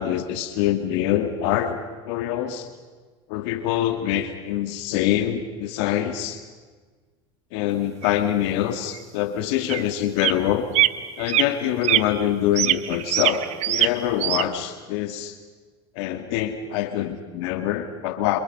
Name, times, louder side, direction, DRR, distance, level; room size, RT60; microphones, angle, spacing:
voice 1, 0.0-1.8 2.0-2.7 3.3-6.4 7.5-10.7 11.2-15.4 16.0-18.4, left 11 dB, 70° left, 7 dB, 2.0 m, -25 dB
sound 1, 8.0-8.1 8.9-9.0 9.7-9.8 10.2-10.5 10.7-10.9 11.2-11.5 11.8-12.0 12.6-13.9 14.2-14.4, right 14 dB, 50° right, 1.1 m, -22 dB
28.5 x 26.5 x 5.4 m, 1.4 s
hypercardioid pair, 95°, 14 cm